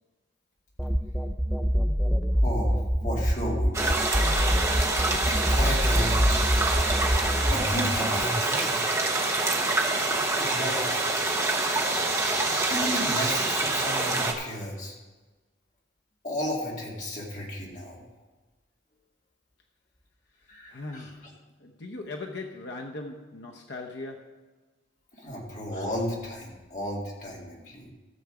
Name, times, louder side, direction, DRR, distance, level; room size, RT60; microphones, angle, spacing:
sound 1, 0.8-8.4, equal, ahead, 0.5 m, -25 dB
voice 1, 2.4-2.8 3.0-4.2 5.3-6.4 7.5-8.9 10.4-11.1 12.7-15.0 16.2-18.0 20.5-21.1 25.1-27.9, left 1 dB, 40° left, 2.3 m, -34 dB
sound 2, 3.7-14.3, right 2 dB, 15° right, 0.9 m, -26 dB
voice 2, 20.7-24.4, left 2 dB, 60° left, 0.8 m, -39 dB
14.0 x 7.0 x 4.9 m
head